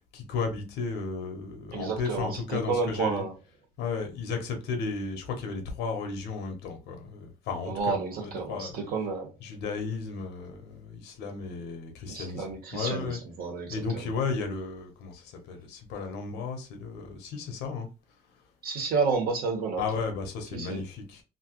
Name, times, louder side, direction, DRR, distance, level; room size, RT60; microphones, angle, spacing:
voice 1, 0.1-3.2 3.8-8.8 9.4-12.5 12.7-13.2 13.7-17.9 19.8-21.2, left 4 dB, 90° left, 1.0 m, -34 dB
voice 2, 1.7-3.3 7.7-9.3 12.1-14.1 18.6-19.8 20.5-20.8, right 4 dB, 65° right, 1.3 m, -30 dB
3.0 x 2.6 x 3.0 m
cardioid pair, 110°, 17 cm